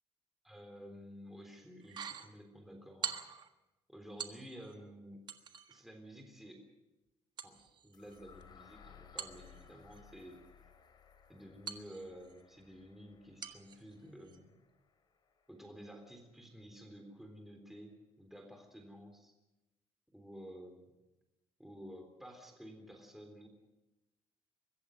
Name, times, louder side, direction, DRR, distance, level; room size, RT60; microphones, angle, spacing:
voice 1, 0.4-3.2 3.9-5.2 5.7-6.6 7.4-10.4 11.3-14.5 15.5-19.3 20.1-20.9 21.6-23.5, equal, 5° right, 3 dB, 3.6 m, -52 dB
sound 1, 1.8-2.3 3.0-3.5 4.2-4.8 5.3-5.8 7.4-8.4 9.2-10.0 11.7-12.4 13.4-13.8 14.2-14.4, right 7 dB, 45° right, 1.5 m, -44 dB
sound 2, 7.9-15.9, left 7 dB, 45° left, 3.3 m, -61 dB
23.5 x 15.0 x 7.7 m, 1.0 s
cardioid pair, 125°, 11 cm